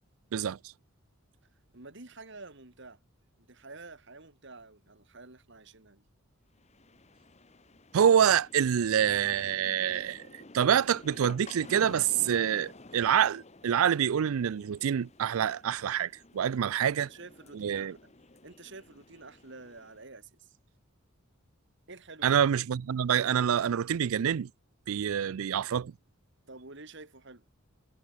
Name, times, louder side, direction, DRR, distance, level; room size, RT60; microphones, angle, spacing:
voice 1, 1.7-3.0 3.4-6.0 16.6-18.1 18.4-20.6 21.9-22.4 26.5-27.4, right 3 dB, 55° right, 2.4 m, -49 dB
sound 1, 6.5-20.0, left 2 dB, 30° left, 1.4 m, -52 dB
voice 2, 7.9-17.1 17.5-18.0 22.2-24.5 24.9-25.9, right 8 dB, 75° right, 0.4 m, -26 dB
head